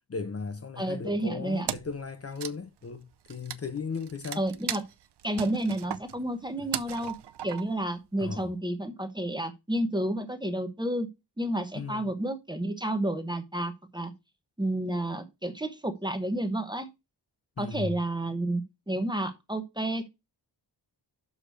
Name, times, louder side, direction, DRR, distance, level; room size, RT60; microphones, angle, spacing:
voice 1, 0.1-4.4 8.2-8.5 11.7-12.1 17.6-18.0, left 4 dB, 35° left, 0.8 m, -36 dB
voice 2, 0.8-1.7 4.4-4.8 5.2-7.1 7.4-11.1 11.4-14.1 14.6-16.9 17.6-20.1, right 1 dB, 10° right, 0.9 m, -30 dB
Wood, 1.7-2.0 2.3-7.9, right 11 dB, 70° right, 0.6 m, -37 dB
6.5 x 4.9 x 6.5 m
wide cardioid pair, 145°, 41 cm